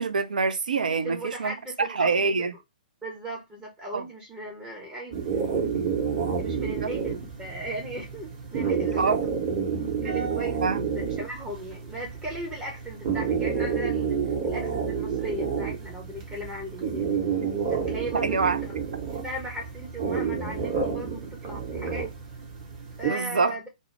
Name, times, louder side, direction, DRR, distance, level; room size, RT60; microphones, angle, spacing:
voice 1, 0.0-1.5 1.9-2.5 3.9-4.0 6.7-6.8 9.0-9.2 10.6-10.8 18.1-18.6 23.1-23.5, right 4 dB, 70° right, 0.3 m, -25 dB
voice 2, 1.0-2.5 3.0-5.2 6.3-9.4 10.0-10.6 10.9-14.2 14.4-17.1 17.7-18.8 19.2-22.1 23.0-23.7, right 1 dB, 15° right, 0.6 m, -37 dB
sound 1, 5.1-23.1, right 6 dB, 35° right, 0.9 m, -29 dB
2.2 x 2.0 x 3.1 m
figure-of-eight pair, 120°, 5 cm